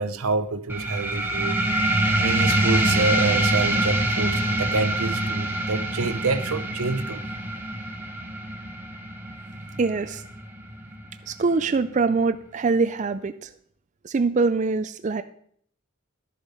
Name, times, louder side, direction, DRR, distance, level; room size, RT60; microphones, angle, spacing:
voice 1, 0.0-1.6 2.2-7.2, right 3 dB, 80° right, 12 dB, 0.8 m, -27 dB
sound 1, 0.7-11.7, right 1 dB, 10° right, 1.0 m, -25 dB
voice 2, 9.7-10.2 11.3-13.5 14.0-15.2, right 4 dB, 35° right, 10 dB, 0.4 m, -23 dB
11.5 x 7.2 x 5.5 m, 0.63 s
head